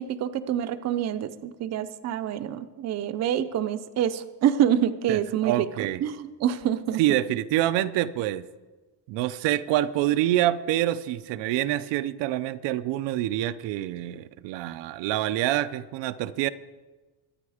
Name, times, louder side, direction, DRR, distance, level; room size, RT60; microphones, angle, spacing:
voice 1, 0.0-5.7 6.0-7.0, right 10 dB, 40° right, 10 dB, 0.6 m, -26 dB
voice 2, 5.1-6.0 7.0-8.5 9.1-16.5, right 13 dB, 75° right, 11 dB, 0.7 m, -26 dB
23.0 x 8.9 x 4.9 m, 1.2 s
cardioid pair, 175°, 43 cm